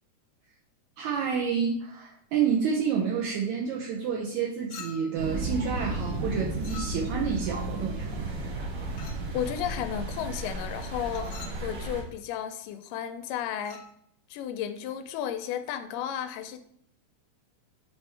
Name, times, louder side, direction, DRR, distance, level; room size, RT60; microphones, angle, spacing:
voice 1, 1.0-8.1, right 6 dB, 75° right, -1 dB, 1.9 m, -29 dB
Chink clink, 4.7-5.3 6.6-7.3 9.0-9.3 11.0-11.7 13.6-13.9, left 7 dB, 70° left, 1.5 m, -45 dB
sound 1, 5.2-12.0, right 2 dB, 90° right, 3.9 m, -33 dB
voice 2, 9.3-13.8 14.3-16.6, left 10 dB, 85° left, 9 dB, 2.2 m, -33 dB
7.5 x 3.4 x 4.3 m, 0.68 s
omnidirectional pair, 3.8 m